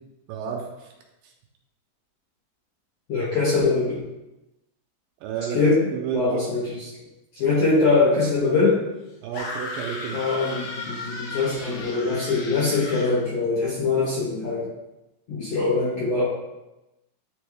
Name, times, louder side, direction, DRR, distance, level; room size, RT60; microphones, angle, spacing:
voice 1, 0.3-0.9 1.2-1.3 5.2-6.5 9.2-10.2, right 7 dB, 80° right, 1 dB, 2.2 m, -31 dB
voice 2, 3.1-4.0 5.5-6.7 7.4-8.8 10.1-14.7 15.3-16.2, left 3 dB, 65° left, -7 dB, 1.6 m, -22 dB
sound 1, 9.3-13.2, left 2 dB, 80° left, 3.1 m, -35 dB
9.2 x 3.4 x 3.4 m, 0.96 s
omnidirectional pair, 4.3 m